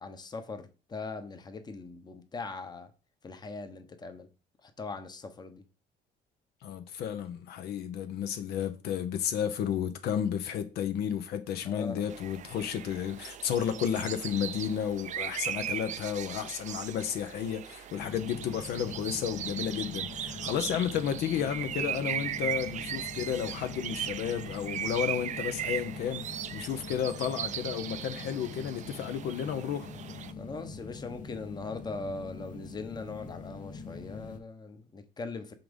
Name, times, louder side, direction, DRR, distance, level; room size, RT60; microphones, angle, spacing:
voice 1, 0.0-2.9 3.2-4.3 4.6-5.6 11.6-12.0 30.4-35.5, left 3 dB, 25° left, 0.9 m, -40 dB
voice 2, 6.6-29.9, left 9 dB, 75° left, 0.7 m, -32 dB
sound 1, 12.1-30.3, right 10 dB, 45° right, 0.4 m, -38 dB
sound 2, 17.9-34.4, left 4 dB, 50° left, 1.1 m, -44 dB
5.8 x 3.6 x 5.2 m
cardioid pair, 110°, 17 cm